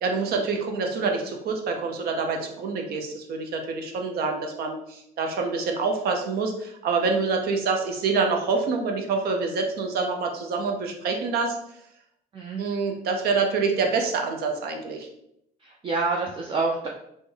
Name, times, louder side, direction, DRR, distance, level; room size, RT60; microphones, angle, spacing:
voice 1, 0.0-11.6 12.6-15.1, right 4 dB, 70° right, 3 dB, 0.7 m, -26 dB
voice 2, 15.6-16.9, right 3 dB, 30° right, -1 dB, 0.5 m, -27 dB
3.5 x 2.1 x 3.4 m, 0.75 s
cardioid pair, 110°, 17 cm